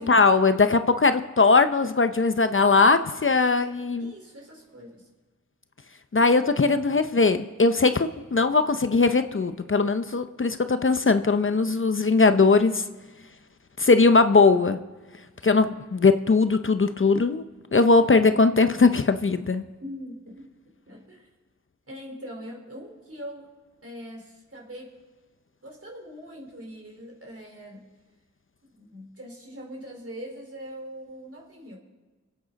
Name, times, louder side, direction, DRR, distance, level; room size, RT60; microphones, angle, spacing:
voice 1, 0.0-4.1 6.1-12.8 13.8-14.8 15.4-17.4 17.7-19.6, left 4 dB, 45° left, 10 dB, 0.7 m, -20 dB
voice 2, 4.0-5.0 19.8-20.4 20.9-21.3 21.9-23.5 23.8-24.9 25.6-27.9 28.8-31.8, equal, 50° right, -1 dB, 4.4 m, -41 dB
26.5 x 8.8 x 4.1 m, 1.3 s
wide cardioid pair, 45°, 29 cm